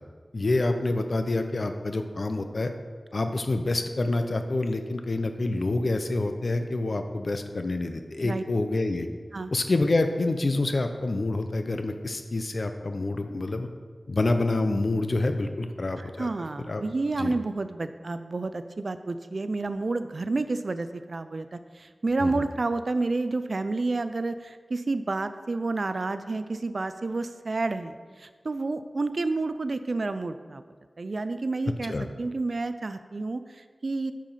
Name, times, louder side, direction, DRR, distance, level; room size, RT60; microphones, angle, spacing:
voice 1, 0.3-2.7 3.1-9.1 9.5-13.7 14.1-16.3 16.7-16.8 17.2-17.3 22.2-22.3 31.9-32.1, left 2 dB, 60° left, 7 dB, 0.7 m, -27 dB
voice 2, 16.0-30.6 31.0-34.1, right 3 dB, 60° right, 11 dB, 0.4 m, -30 dB
9.0 x 5.0 x 5.7 m, 1.6 s
wide cardioid pair, 80°, 0 cm